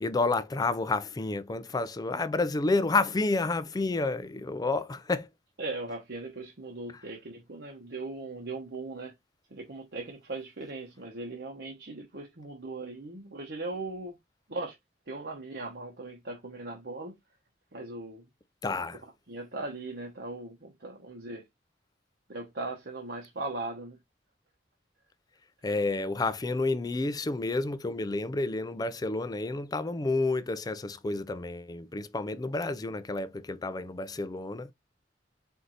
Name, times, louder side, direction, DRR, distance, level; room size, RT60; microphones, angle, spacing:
voice 1, 0.0-5.3 18.6-19.0 25.6-34.7, left 3 dB, 20° left, 0.4 m, -30 dB
voice 2, 5.6-9.1 9.5-14.2 14.5-14.8 15.1-17.1 17.7-18.3 19.3-21.4 22.3-24.0, right 2 dB, 65° right, 1.0 m, -39 dB
4.6 x 2.6 x 3.9 m
head